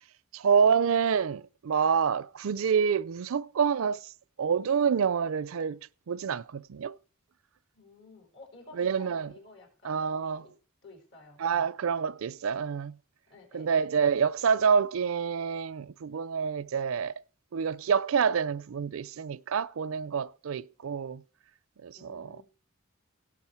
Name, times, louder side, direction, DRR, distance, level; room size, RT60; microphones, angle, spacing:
voice 1, 0.3-4.1 4.4-5.8 6.1-7.0 8.7-9.3 9.8-10.4 11.4-13.0 13.5-17.2 17.5-21.2 21.8-22.3, right 6 dB, 75° right, 0.4 m, -27 dB
voice 2, 7.7-10.5 10.8-11.7 13.3-14.1 21.9-22.4, left 3 dB, 60° left, 4.4 m, -53 dB
17.0 x 6.3 x 4.4 m
head